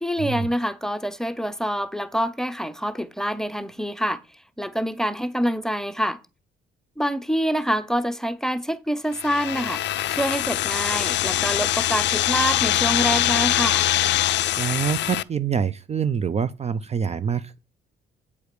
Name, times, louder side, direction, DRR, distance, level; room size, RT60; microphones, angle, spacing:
voice 1, 0.0-4.2 4.6-6.2 7.0-9.8 10.1-13.9, equal, ahead, 0.7 m, -26 dB
sound 1, 9.1-15.2, left 14 dB, 65° left, 0.4 m, -23 dB
voice 2, 14.6-17.6, right 7 dB, 35° right, 0.5 m, -26 dB
8.4 x 4.9 x 6.6 m
cardioid pair, 90°, 20 cm